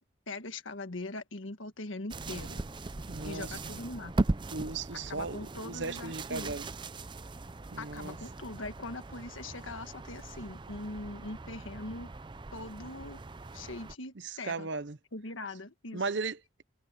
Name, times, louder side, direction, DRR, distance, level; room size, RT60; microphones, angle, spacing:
voice 1, 0.3-2.6 3.2-4.1 4.9-6.5 7.8-12.1 12.5-13.2 13.5-14.7 15.1-16.0, left 2 dB, 85° left, 1.6 m, -41 dB
sound 1, 2.1-14.0, right 2 dB, 25° right, 0.5 m, -39 dB
voice 2, 3.1-3.6 4.5-6.7 7.7-8.2 14.2-15.0 15.9-16.6, right 4 dB, 65° right, 0.8 m, -37 dB
head